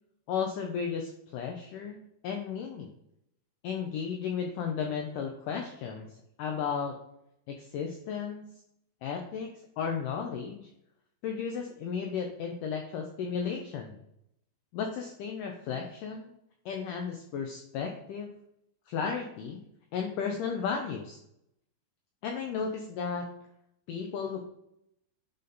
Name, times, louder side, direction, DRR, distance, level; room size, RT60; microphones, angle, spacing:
voice 1, 0.3-2.9 3.6-6.1 6.4-7.0 7.5-8.5 9.0-10.7 11.2-14.0 14.7-16.3 16.7-18.3 18.9-19.6 19.9-21.2 22.2-23.3 23.9-24.5, left 6 dB, 90° left, 3 dB, 1.8 m, -34 dB
10.5 x 4.2 x 4.0 m, 0.77 s
omnidirectional pair, 4.6 m